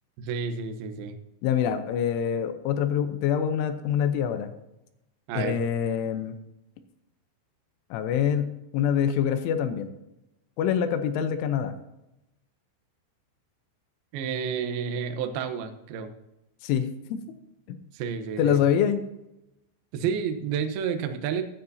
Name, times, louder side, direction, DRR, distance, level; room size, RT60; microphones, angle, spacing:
voice 1, 0.2-1.2 5.3-5.6 14.1-16.1 17.9-18.6 19.9-21.4, right 7 dB, 90° right, 7 dB, 2.1 m, -30 dB
voice 2, 1.4-4.5 5.3-6.3 7.9-9.9 10.6-11.7 16.6-17.2 17.7-17.8 18.4-19.0, left 8 dB, 80° left, 8 dB, 3.2 m, -25 dB
15.5 x 10.5 x 2.8 m, 0.90 s
omnidirectional pair, 5.9 m